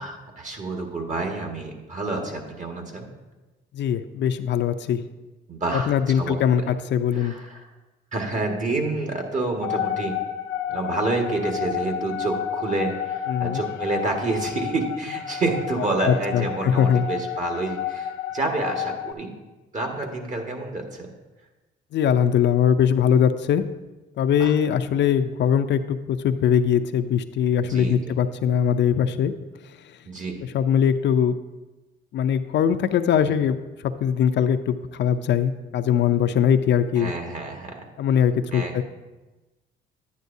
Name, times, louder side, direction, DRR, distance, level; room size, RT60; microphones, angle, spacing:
voice 1, 0.0-3.1 5.5-6.7 7.1-7.7 8.1-10.2 10.7-19.3 19.7-21.1 24.4-24.5 27.7-28.2 30.1-30.5 33.2-33.3 37.0-37.8 38.5-38.8, right 3 dB, 40° right, 2 dB, 1.7 m, -28 dB
voice 2, 3.7-5.0 5.7-7.4 13.3-13.6 16.0-17.1 21.9-23.7 24.2-29.3 30.4-31.3 32.1-33.6 34.0-37.1 38.0-38.8, left 8 dB, 65° left, 9 dB, 0.5 m, -21 dB
sound 1, 9.6-19.1, left 9 dB, 90° left, 0.8 m, -31 dB
11.0 x 9.3 x 2.7 m, 1.1 s
cardioid pair, 90°, 20 cm